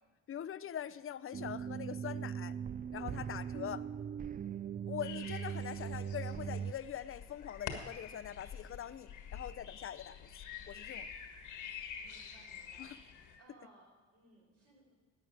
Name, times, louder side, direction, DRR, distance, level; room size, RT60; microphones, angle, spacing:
voice 1, 0.3-2.6 2.9-3.9 4.9-10.3 10.7-11.1 12.8-13.0, left 9 dB, 45° left, 15 dB, 0.6 m, -43 dB
sound 1, 1.3-6.7, right 8 dB, 30° right, 0.4 m, -40 dB
voice 2, 3.0-3.3 12.0-13.0 13.4-14.9, right 2 dB, 55° right, -2 dB, 5.7 m, -63 dB
sound 2, 5.0-13.4, left 7 dB, 85° left, 1.7 m, -47 dB
11.5 x 8.6 x 8.8 m, 1.3 s
cardioid pair, 90°, 30 cm